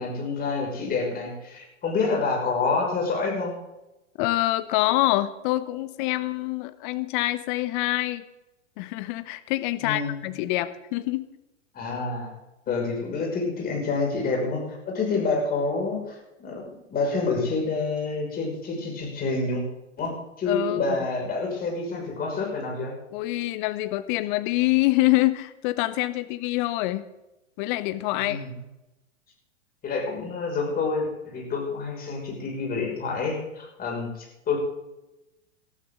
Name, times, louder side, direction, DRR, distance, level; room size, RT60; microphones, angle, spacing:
voice 1, 0.0-3.5 9.8-10.2 11.7-12.3 12.7-19.6 20.0-22.9 28.1-28.5 29.8-34.6, left 4 dB, 25° left, 0 dB, 6.0 m, -28 dB
voice 2, 4.2-8.2 8.8-11.3 12.7-12.8 20.5-20.8 23.1-27.1 27.6-28.4, left 17 dB, 40° left, 12 dB, 1.2 m, -25 dB
19.0 x 13.0 x 3.8 m, 0.96 s
hypercardioid pair, 110°, 37 cm